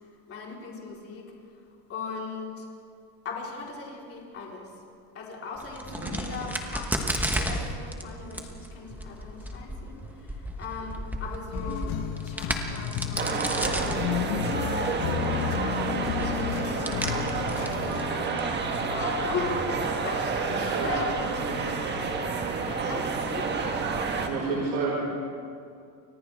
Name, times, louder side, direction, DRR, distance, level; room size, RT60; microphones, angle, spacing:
voice 1, 0.3-1.3 1.9-2.7 3.2-4.7 5.1-14.4 14.6-15.9 16.2-21.5 22.7-23.5, left 4 dB, 30° left, -3 dB, 4.1 m, -39 dB
Crack, 5.6-18.8, right 1 dB, 5° right, 1.2 m, -35 dB
sound 1, 11.5-18.1, left 11 dB, 50° left, 1.2 m, -32 dB
sound 2, 13.2-24.3, right 4 dB, 20° right, 1.5 m, -29 dB
voice 2, 20.5-20.9 21.4-21.7 24.2-25.0, right 4 dB, 90° right, -5 dB, 5.5 m, -30 dB
29.5 x 24.5 x 3.6 m, 2.3 s
cardioid pair, 160°, 48 cm